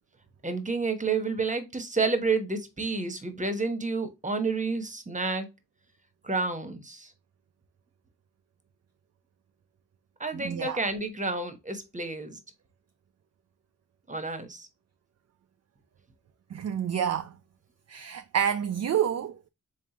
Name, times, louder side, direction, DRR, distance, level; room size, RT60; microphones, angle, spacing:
voice 1, 0.4-5.5 6.2-7.1 10.2-12.4 14.1-14.7, right 3 dB, 20° right, 1.0 m, -30 dB
voice 2, 10.3-10.8 16.5-17.3 17.9-19.4, right 9 dB, 45° right, 0.4 m, -28 dB
3.6 x 3.5 x 2.8 m
cardioid pair, 50°, 39 cm